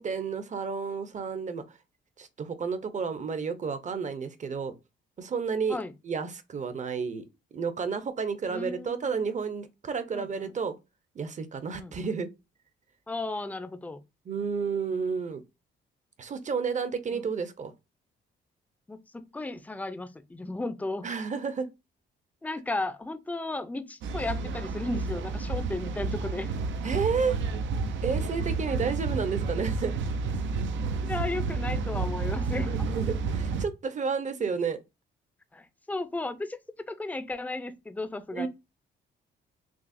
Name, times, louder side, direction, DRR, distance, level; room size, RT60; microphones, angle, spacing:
voice 1, 0.0-1.6 2.2-4.7 5.2-5.8 6.0-7.3 7.5-10.7 11.1-12.3 14.3-15.4 16.2-17.7 21.0-21.7 26.8-27.4 28.0-29.9 32.7-34.8 38.3-38.5, right 5 dB, 40° right, 0.7 m, -31 dB
voice 2, 8.5-9.3 10.1-10.5 11.8-11.9 13.1-14.0 17.1-17.2 18.9-21.1 22.4-26.5 31.0-32.7 35.5-36.6 36.9-38.5, left 2 dB, 10° left, 0.5 m, -34 dB
sound 1, 24.0-33.7, right 4 dB, 70° right, 0.6 m, -30 dB
6.0 x 2.0 x 2.5 m
cardioid pair, 90°, 20 cm